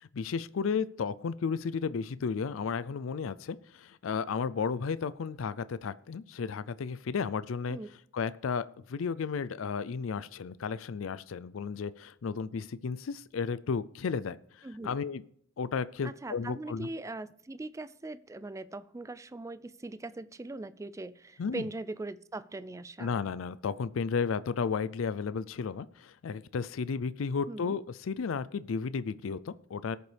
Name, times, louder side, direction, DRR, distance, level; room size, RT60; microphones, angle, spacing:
voice 1, 0.0-7.8 8.1-15.2 15.6-16.9 21.4-21.6 23.0-30.0, left 5 dB, 90° left, 16 dB, 0.4 m, -33 dB
voice 2, 16.0-23.1 27.5-27.8, right 2 dB, 15° right, 15 dB, 0.3 m, -40 dB
20.0 x 6.8 x 3.4 m, 0.65 s
head